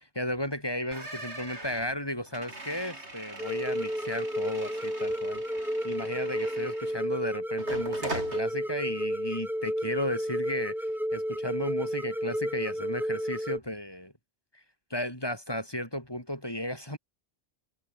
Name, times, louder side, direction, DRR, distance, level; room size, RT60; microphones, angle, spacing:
voice 1, 0.0-5.4 5.8-14.1 14.9-17.0, left 1 dB, 20° left, 6.1 m, -34 dB
sound 1, 0.9-7.1 7.6-8.4, right 2 dB, 65° right, 5.9 m, -41 dB
sound 2, 3.4-13.6, equal, ahead, 1.7 m, -32 dB
omnidirectional pair, 1.2 m